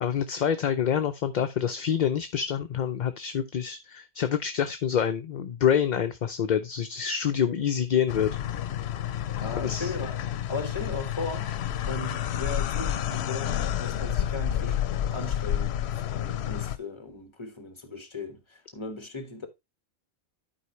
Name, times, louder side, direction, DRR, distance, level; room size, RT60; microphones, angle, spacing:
voice 1, 0.0-8.4 9.5-9.9, left 8 dB, 50° left, 0.6 m, -27 dB
sound 1, 8.1-16.8, left 10 dB, 80° left, 0.9 m, -30 dB
voice 2, 9.4-11.5 11.8-19.5, left 3 dB, 25° left, 1.4 m, -37 dB
11.5 x 4.7 x 3.1 m
omnidirectional pair, 1.1 m